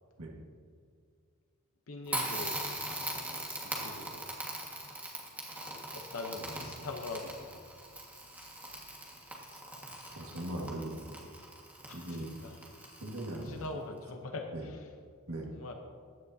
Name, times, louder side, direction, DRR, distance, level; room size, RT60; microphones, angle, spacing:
voice 1, 1.9-2.7 3.6-4.4 5.9-7.8 11.9-14.9 15.5-15.7, left 3 dB, 65° left, 3 dB, 0.8 m, -43 dB
Crackle, 2.1-13.6, right 1 dB, 5° right, 1.6 m, -41 dB
voice 2, 10.2-11.2 11.9-12.3 13.0-13.6 14.5-14.6 15.3-15.5, right 1 dB, 70° right, 0 dB, 1.7 m, -39 dB
15.0 x 10.0 x 2.7 m, 2.2 s
head